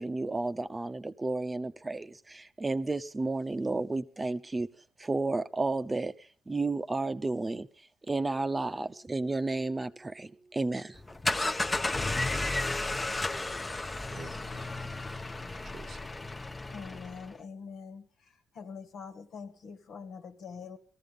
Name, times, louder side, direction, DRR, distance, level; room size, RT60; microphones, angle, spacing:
voice 1, 0.0-4.7 5.0-7.7 8.0-11.0 13.3-13.6, right 3 dB, 20° right, 0.8 m, -32 dB
sound 1, 10.9-17.3, left 2 dB, 20° left, 0.9 m, -33 dB
voice 2, 14.1-16.2, right 6 dB, 50° right, 0.8 m, -51 dB
voice 3, 16.7-18.1 18.5-20.8, left 5 dB, 70° left, 2.0 m, -44 dB
17.5 x 14.0 x 5.3 m
cardioid pair, 90°, 0 cm